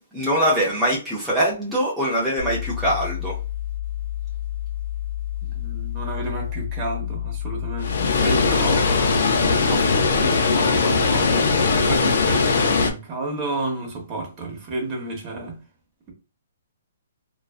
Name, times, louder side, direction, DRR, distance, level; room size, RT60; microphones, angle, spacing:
voice 1, 0.1-3.4, equal, ahead, 0.6 m, -22 dB
sound 1, 2.4-9.2, left 12 dB, 50° right, 0.5 m, -30 dB
voice 2, 5.4-15.6, right 2 dB, 25° right, 0.9 m, -31 dB
Water, 7.8-12.9, left 4 dB, 65° left, 0.5 m, -20 dB
2.5 x 2.2 x 2.4 m
hypercardioid pair, 160°, 0 cm